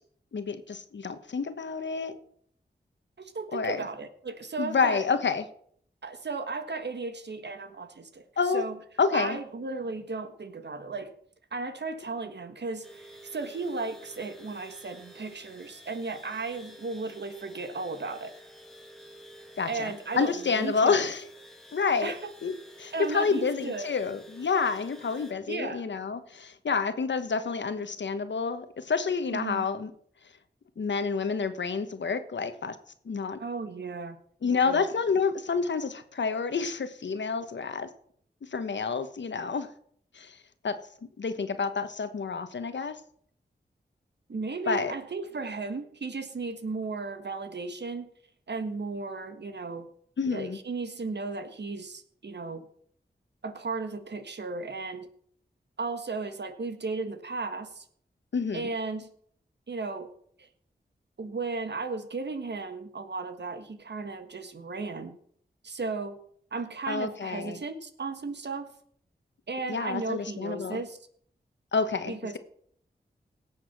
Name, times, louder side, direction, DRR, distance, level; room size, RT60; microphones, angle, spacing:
voice 1, 0.3-2.1 3.5-3.8 4.6-5.4 8.4-8.6 9.0-9.4 19.6-21.2 21.7-22.1 22.4-22.5 22.8-29.9 30.8-32.8 33.0-33.4 34.4-37.9 38.5-39.7 40.1-40.4 40.6-40.8 41.2-42.9 44.7-44.9 50.2-50.6 58.3-58.7 66.9-67.6 69.7-70.8 71.7-72.4, left 5 dB, 80° left, 10 dB, 1.3 m, -29 dB
voice 2, 3.2-5.1 6.0-8.2 8.5-8.8 9.1-11.1 11.5-18.3 19.7-21.0 22.0-22.2 22.9-23.9 25.5-25.9 29.3-29.7 33.4-34.8 44.3-48.1 48.5-49.9 50.3-52.7 53.4-55.1 55.8-57.8 58.5-59.1 59.7-60.1 61.2-65.2 65.6-66.2 66.5-68.7 69.5-71.0 72.1-72.4, right 3 dB, 70° right, 9 dB, 1.6 m, -35 dB
sound 1, 12.8-25.3, right 1 dB, 5° left, 2.3 m, -50 dB
17.5 x 7.4 x 6.0 m, 0.63 s
cardioid pair, 50°, 18 cm